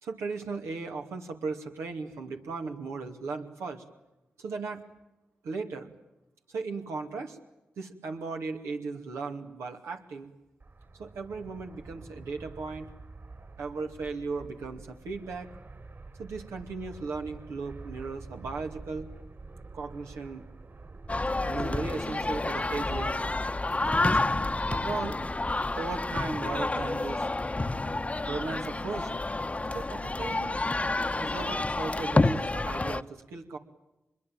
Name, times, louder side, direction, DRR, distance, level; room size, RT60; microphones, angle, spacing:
voice 1, 0.0-3.8 4.4-4.8 5.4-5.9 6.5-7.4 7.8-10.3 11.0-12.9 13.6-15.5 16.2-19.1 19.7-20.4 21.4-23.2 23.8-24.2 24.7-25.2 25.8-27.2 28.3-29.3 29.7-30.6 31.2-33.6, right 4 dB, 90° right, 3 dB, 2.4 m, -37 dB
Fixed-wing aircraft airplane, 10.6-25.7, right 3 dB, 55° right, 4.8 m, -48 dB
sound 1, 21.1-33.0, left 2 dB, 30° left, 0.9 m, -29 dB
25.5 x 22.0 x 9.0 m, 0.94 s
supercardioid pair, 40°, 5 cm